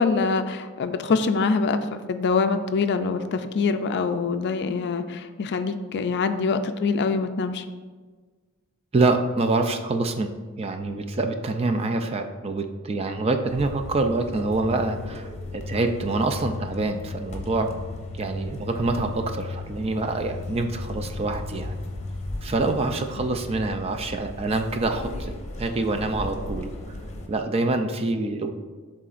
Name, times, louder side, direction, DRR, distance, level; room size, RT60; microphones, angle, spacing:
voice 1, 0.0-7.6, left 4 dB, 50° left, 9 dB, 0.4 m, -24 dB
voice 2, 8.9-17.7 18.1-21.8 22.4-26.7 27.3-28.5, right 2 dB, 25° right, 6 dB, 0.4 m, -26 dB
sound 1, 13.5-27.3, left 2 dB, 30° left, 0.9 m, -35 dB
11.0 x 3.8 x 2.5 m, 1.4 s
head